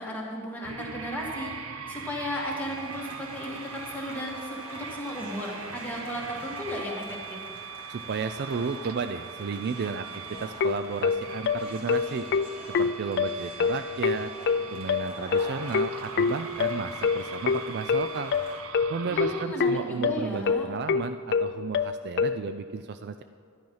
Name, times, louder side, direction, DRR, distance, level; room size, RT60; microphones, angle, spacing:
voice 1, 0.0-1.5 1.9-7.4 19.1-20.7, equal, 10° left, -4 dB, 2.3 m, -35 dB
sound 1, 0.6-19.4, right 6 dB, 90° right, 0.7 m, -41 dB
sound 2, 2.3-18.6, equal, 25° right, 2.1 m, -45 dB
voice 2, 7.9-10.1 10.4-12.3 12.8-14.3 14.7-18.3 18.9-23.2, right 5 dB, 50° right, 10 dB, 0.4 m, -33 dB
sound 3, 10.3-22.4, left 5 dB, 55° left, 0.4 m, -25 dB
12.0 x 10.5 x 5.6 m, 2.1 s
head